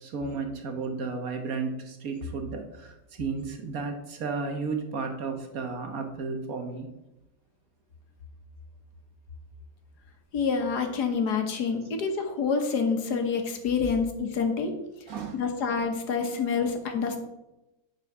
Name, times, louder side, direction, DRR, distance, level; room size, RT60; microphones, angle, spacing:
voice 1, 0.0-6.9 15.1-15.4, right 4 dB, 60° right, 4 dB, 1.5 m, -33 dB
voice 2, 10.3-14.7 15.3-17.2, left 5 dB, 75° left, 5 dB, 1.8 m, -27 dB
9.7 x 4.8 x 6.0 m, 0.96 s
omnidirectional pair, 1.7 m